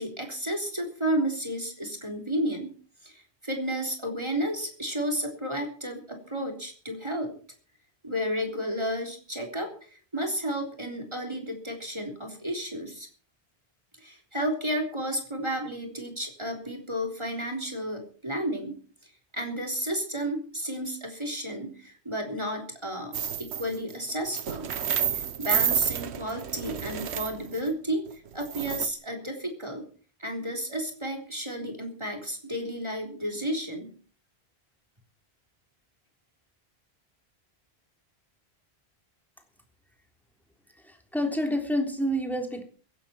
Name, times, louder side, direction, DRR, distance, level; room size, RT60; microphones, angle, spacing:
voice 1, 0.0-2.8 3.0-7.3 8.0-13.1 14.0-18.8 19.3-24.7 25.1-28.0 28.3-29.9 30.2-33.9, equal, 25° right, 2 dB, 3.6 m, -32 dB
sound 1, 23.1-23.8 24.1-27.7 28.4-28.9, right 8 dB, 85° right, 1.2 m, -29 dB
voice 2, 40.8-42.6, equal, ahead, 3 dB, 3.5 m, -28 dB
16.5 x 16.0 x 4.4 m, 0.41 s
omnidirectional pair, 1.1 m